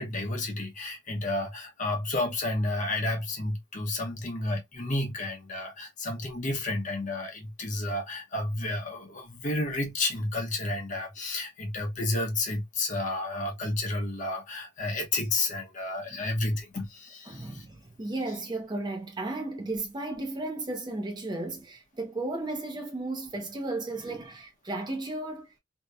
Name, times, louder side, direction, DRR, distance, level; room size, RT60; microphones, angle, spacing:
voice 1, 0.0-17.6, left 2 dB, 40° left, 0.7 m, -31 dB
voice 2, 17.3-25.6, right 2 dB, 20° right, 0.5 m, -34 dB
2.7 x 2.1 x 2.3 m
head